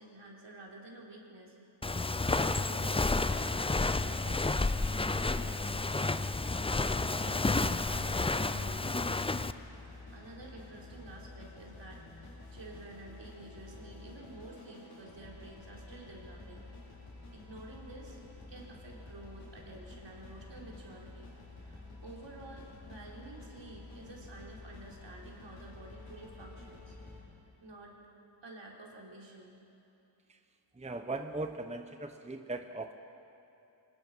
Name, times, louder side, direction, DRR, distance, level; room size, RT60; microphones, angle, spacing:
voice 1, 0.0-1.5 2.0-6.6 6.8-9.3 10.1-16.7 17.3-18.2 18.5-21.3 21.6-26.9 27.6-28.0 28.4-29.6, right 2 dB, 65° right, -2 dB, 3.8 m, -50 dB
Walk footsteps, 1.8-9.5, left 3 dB, 15° left, 0.4 m, -30 dB
sound 1, 7.3-27.2, left 2 dB, 75° left, 6.1 m, -50 dB
voice 2, 30.7-32.9, right 2 dB, 15° right, 7 dB, 0.8 m, -39 dB
24.0 x 20.0 x 5.5 m, 2.8 s
wide cardioid pair, 90°, 46 cm